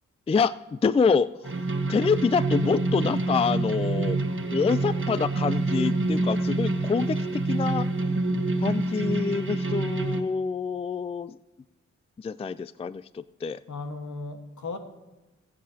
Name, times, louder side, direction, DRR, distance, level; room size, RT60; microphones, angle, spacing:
voice 1, 0.3-1.5 1.9-4.2 4.5-7.9 8.6-11.4 12.2-13.6, left 5 dB, 20° left, 16 dB, 0.3 m, -26 dB
sound 1, 1.4-10.2, right 2 dB, 40° right, 1.3 m, -27 dB
voice 2, 13.7-14.8, left 3 dB, 70° left, 5 dB, 1.5 m, -36 dB
22.0 x 7.6 x 2.8 m, 1.1 s
cardioid pair, 50°, 30 cm